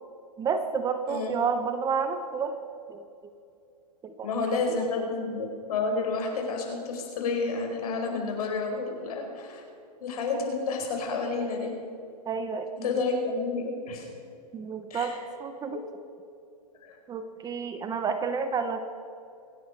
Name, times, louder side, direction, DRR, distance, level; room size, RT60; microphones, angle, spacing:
voice 1, 0.4-2.5 2.9-3.3 4.0-5.1 12.3-13.0 14.5-15.8 17.1-18.8, right 5 dB, 20° right, 9 dB, 1.0 m, -31 dB
voice 2, 1.1-1.4 4.2-9.6 10.0-11.7 12.8-14.1 14.9-15.1 15.7-15.8 16.8-17.0, left 4 dB, 65° left, 2 dB, 4.8 m, -30 dB
25.5 x 10.0 x 4.7 m, 2.5 s
hypercardioid pair, 130°, 20 cm